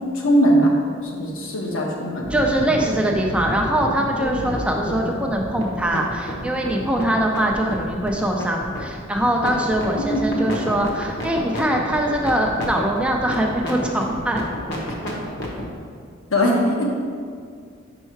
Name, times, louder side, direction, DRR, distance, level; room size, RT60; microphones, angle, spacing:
voice 1, 0.1-0.7 1.0-2.4 4.3-4.5 10.0-10.3 16.3-16.9, equal, 75° left, -2 dB, 1.1 m, -20 dB
sound 1, 2.2-15.6, equal, 55° left, 1.0 m, -30 dB
voice 2, 2.3-14.4, right 1 dB, 5° right, 0 dB, 0.4 m, -22 dB
5.5 x 4.5 x 4.5 m, 2.1 s
head